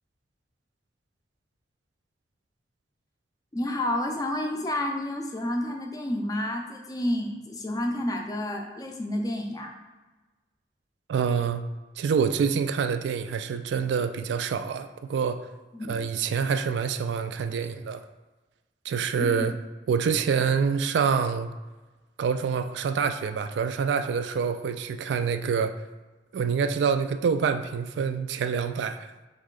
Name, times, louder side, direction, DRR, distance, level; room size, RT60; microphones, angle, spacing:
voice 1, 3.5-9.7 15.7-16.0 19.1-19.5, left 1 dB, 20° left, 3 dB, 0.4 m, -30 dB
voice 2, 11.1-11.6 12.0-15.4 15.9-18.0 18.8-19.5 19.9-21.5 22.2-25.7 26.3-29.1, right 6 dB, 85° right, 9 dB, 0.3 m, -26 dB
3.6 x 3.1 x 3.7 m, 1.2 s
head